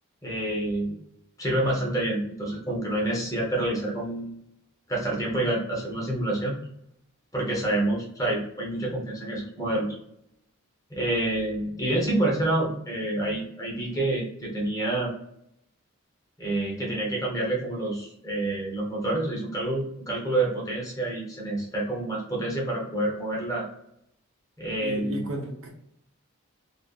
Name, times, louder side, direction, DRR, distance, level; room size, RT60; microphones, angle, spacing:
voice 1, 0.2-1.0 1.4-4.3 4.9-6.6 7.3-9.9 10.9-15.1 16.4-23.7 24.6-25.3, right 1 dB, 15° left, -2 dB, 0.7 m, -28 dB
voice 2, 24.8-25.8, right 1 dB, 75° right, 1 dB, 0.6 m, -34 dB
2.5 x 2.3 x 2.3 m, 0.76 s
head